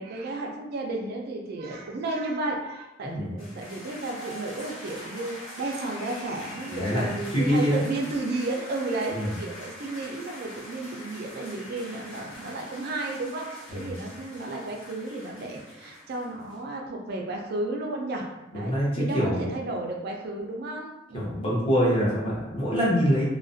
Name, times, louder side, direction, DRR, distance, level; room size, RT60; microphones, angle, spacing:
voice 1, 0.0-18.3 18.5-21.4, right 2 dB, 50° right, 1 dB, 0.3 m, -33 dB
sound 1, 3.4-16.6, left 1 dB, 80° left, 1.0 m, -43 dB
voice 2, 6.7-7.8 9.1-9.3 13.7-13.9 18.5-19.5 21.1-23.2, equal, 30° left, -7 dB, 0.8 m, -25 dB
2.3 x 2.1 x 2.5 m, 0.98 s
head